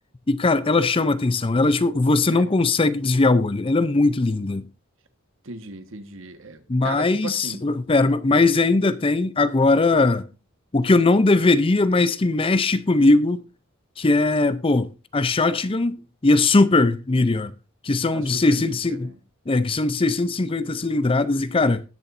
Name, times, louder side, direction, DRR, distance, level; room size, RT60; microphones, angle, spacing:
voice 1, 0.3-4.6 6.7-10.2 10.7-13.4 14.0-16.0 16.2-17.5 17.8-19.1 19.5-21.8, left 3 dB, 25° left, 0.5 m, -20 dB
voice 2, 5.4-7.6 18.1-19.2, right 3 dB, 65° right, 1.4 m, -37 dB
20.0 x 7.0 x 2.6 m
head